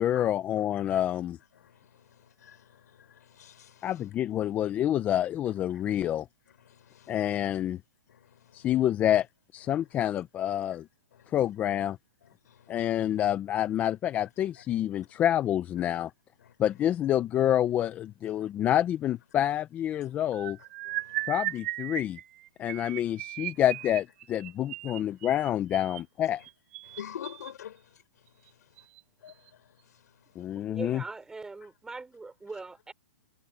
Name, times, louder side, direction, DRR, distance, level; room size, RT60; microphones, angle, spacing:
voice 1, 0.0-1.4 3.8-6.3 7.1-7.8 8.5-9.3 9.5-10.8 11.3-12.0 12.7-16.1 16.6-20.6 21.3-22.2 22.6-26.4 30.4-31.0, left 11 dB, 20° left, 0.7 m, -27 dB
voice 2, 1.5-4.1 5.7-6.1 6.5-7.4 8.1-8.9 9.7-9.9 11.1-11.5 12.2-13.0 14.6-14.7 14.9-15.1 16.4-16.6 18.2-18.5 19.9-20.1 20.8-21.6 22.6-22.8 23.5-23.6 24.9-25.2 26.2-26.5 26.8-28.9 29.2-30.7, left 10 dB, 70° left, 6.2 m, -49 dB
sound 1, 20.3-27.5 28.3-28.5 28.8-29.0 29.3-29.5, right 18 dB, 45° right, 7.4 m, -37 dB
voice 3, 30.5-32.9, right 3 dB, 5° right, 5.9 m, -41 dB
hypercardioid pair, 155°, 9 cm